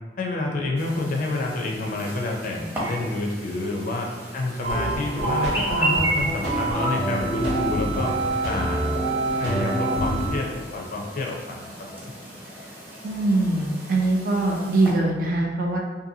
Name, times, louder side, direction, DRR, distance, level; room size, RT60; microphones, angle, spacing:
voice 1, 0.2-8.1 8.5-9.0 9.4-11.7 12.0-12.1, left 2 dB, 50° left, 0 dB, 0.4 m, -28 dB
Chirp tweet, 0.8-14.9, right 1 dB, 15° right, 0.7 m, -35 dB
sound 1, 4.6-10.3, right 1 dB, 75° right, 0.9 m, -25 dB
voice 2, 13.0-15.8, right 2 dB, 55° right, 0 dB, 0.4 m, -22 dB
2.6 x 2.6 x 2.6 m, 1.3 s
head